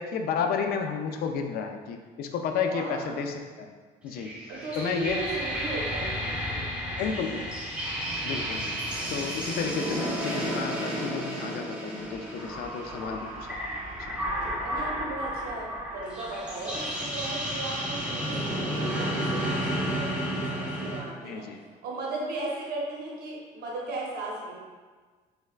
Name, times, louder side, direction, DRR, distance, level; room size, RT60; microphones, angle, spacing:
voice 1, 0.0-3.7 4.0-4.3 4.8-5.2 7.0-7.4 8.2-8.7 9.1-13.6 14.0-14.1 21.2-21.6, left 6 dB, 65° left, 5 dB, 0.4 m, -32 dB
voice 2, 2.7-3.2 4.5-6.8 8.1-8.4 14.3-24.5, right 2 dB, 65° right, -3 dB, 0.9 m, -37 dB
sound 1, 4.1-21.0, equal, 5° right, 0.8 m, -32 dB
3.3 x 3.1 x 2.3 m, 1.4 s
cardioid pair, 110°, 17 cm